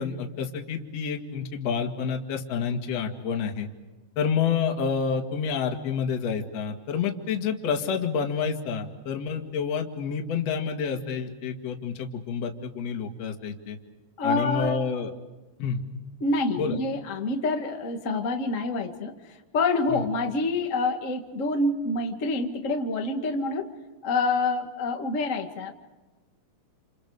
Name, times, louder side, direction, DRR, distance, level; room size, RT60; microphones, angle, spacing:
voice 1, 0.0-3.7 4.2-13.8 14.2-15.1 15.6-15.8 16.6-16.8 19.9-20.0, left 6 dB, 45° left, 4 dB, 2.6 m, -29 dB
voice 2, 14.2-15.0 16.2-19.2 19.5-23.7 24.0-25.7, left 3 dB, 65° left, 4 dB, 0.7 m, -27 dB
29.0 x 28.5 x 5.0 m, 1.2 s
omnidirectional pair, 5.0 m